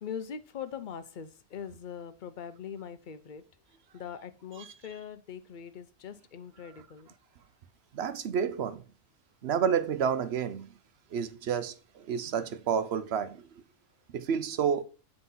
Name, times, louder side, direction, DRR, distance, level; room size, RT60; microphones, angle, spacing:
voice 1, 0.0-3.4 3.9-7.1, left 7 dB, 50° left, 0.7 m, -42 dB
voice 2, 7.9-8.8 9.4-10.7 11.1-13.6 14.1-14.8, right 7 dB, 60° right, 0.9 m, -30 dB
7.8 x 4.0 x 5.5 m
omnidirectional pair, 1.3 m